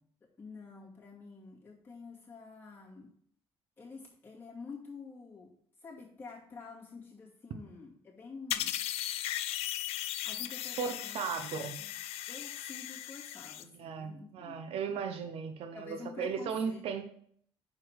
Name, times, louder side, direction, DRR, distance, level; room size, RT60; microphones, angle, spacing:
voice 1, 0.4-3.1 3.8-5.5 5.8-8.8 10.2-11.9 12.3-16.8, left 4 dB, 20° left, -5 dB, 2.5 m, -49 dB
sound 1, 8.5-13.6, left 13 dB, 80° left, 0.4 m, -37 dB
voice 2, 10.8-11.7 13.8-17.0, right 6 dB, 70° right, 8 dB, 0.9 m, -36 dB
6.0 x 4.8 x 4.8 m, 0.64 s
cardioid pair, 115°, 10 cm